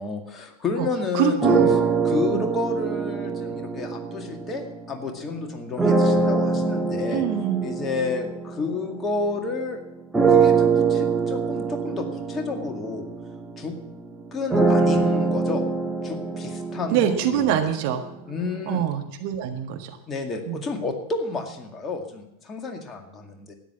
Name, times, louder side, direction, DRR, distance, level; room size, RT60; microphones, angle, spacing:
voice 1, 0.0-1.6 2.0-7.2 7.6-9.8 10.3-13.1 13.6-13.7 14.3-15.6 16.0-17.6 18.3-18.8 20.1-23.5, left 3 dB, 20° left, 3 dB, 2.1 m, -31 dB
voice 2, 1.1-1.8 2.3-2.4 7.1-7.6 16.9-18.0 18.7-20.0 20.5-20.6, right 9 dB, 45° right, 5 dB, 1.5 m, -24 dB
sound 1, 1.4-5.0 5.8-9.6 10.1-18.1, right 4 dB, 5° right, 1.5 m, -24 dB
13.0 x 10.0 x 7.2 m, 0.81 s
figure-of-eight pair, 90°, 0 cm